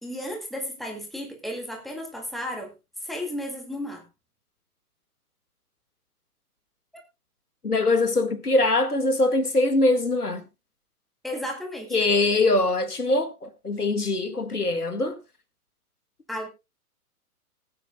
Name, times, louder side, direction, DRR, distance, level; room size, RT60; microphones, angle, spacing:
voice 1, 0.0-2.7 3.0-4.0 6.9-7.0 11.2-12.0 16.3-16.5, left 1 dB, ahead, 2.0 m, -33 dB
voice 2, 7.6-10.4 11.9-15.2, left 2 dB, 85° left, 1.9 m, -23 dB
20.0 x 9.1 x 2.3 m
figure-of-eight pair, 120°, 44 cm